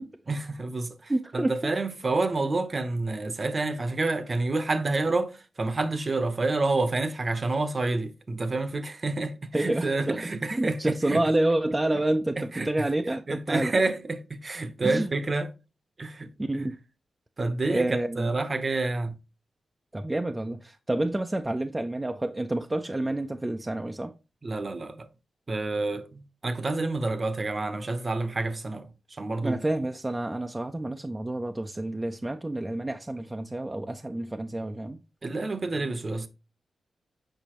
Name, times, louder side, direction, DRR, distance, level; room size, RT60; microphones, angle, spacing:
voice 1, 0.3-11.2 12.4-12.9 13.3-15.5 16.0-16.7 17.4-19.1 24.4-25.1 25.5-29.6 35.2-36.3, right 3 dB, 40° right, 0.9 m, -29 dB
voice 2, 1.1-1.6 9.5-13.7 14.8-15.1 16.4-16.8 17.7-18.3 19.9-24.1 29.4-35.0, right 1 dB, 20° right, 0.5 m, -29 dB
6.7 x 5.2 x 3.0 m
cardioid pair, 80°, 0 cm